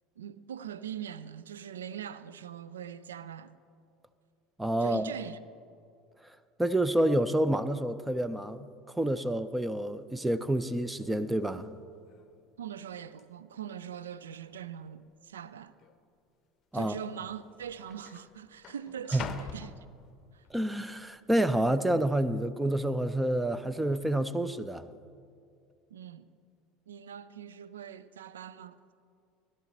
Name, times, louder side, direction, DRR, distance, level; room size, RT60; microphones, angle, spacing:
voice 1, 0.2-3.5 4.8-5.4 12.6-15.7 16.7-19.9 20.3-20.4 25.9-26.3 26.9-28.8, right 9 dB, 75° right, 0.4 m, -42 dB
voice 2, 4.6-5.1 6.6-8.7 8.9-11.7 16.7-17.0 19.1-19.2 20.5-24.8, right 1 dB, 10° right, 0.5 m, -28 dB
sound 1, 11.7-11.8 12.1-12.5 13.2-13.3 14.0-14.6 14.8-14.9 15.8-16.0 17.0-17.1 17.3-20.5 21.0-21.4, left 7 dB, 40° left, 0.7 m, -46 dB
16.0 x 11.5 x 3.9 m
figure-of-eight pair, 70°, 0 cm